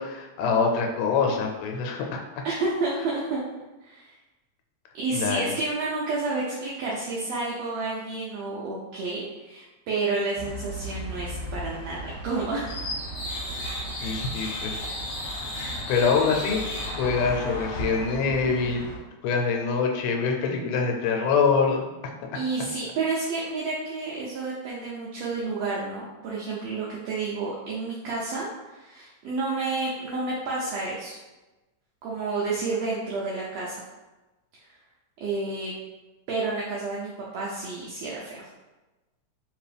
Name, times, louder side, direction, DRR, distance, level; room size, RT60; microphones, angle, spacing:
voice 1, 0.0-2.2 5.1-5.5 14.0-14.9 15.9-16.6 17.0-18.9 19.2-21.9, left 5 dB, 85° left, 2 dB, 2.2 m, -25 dB
voice 2, 2.4-3.4 3.8-4.1 4.9-12.8 22.3-31.2 32.0-33.8 34.7-34.8 35.2-35.7 36.3-38.5, right 3 dB, 75° right, -5 dB, 1.5 m, -30 dB
sound 1, 10.4-19.0, equal, 60° left, 1.5 m, -34 dB
4.4 x 3.0 x 3.3 m, 1.1 s
omnidirectional pair, 3.6 m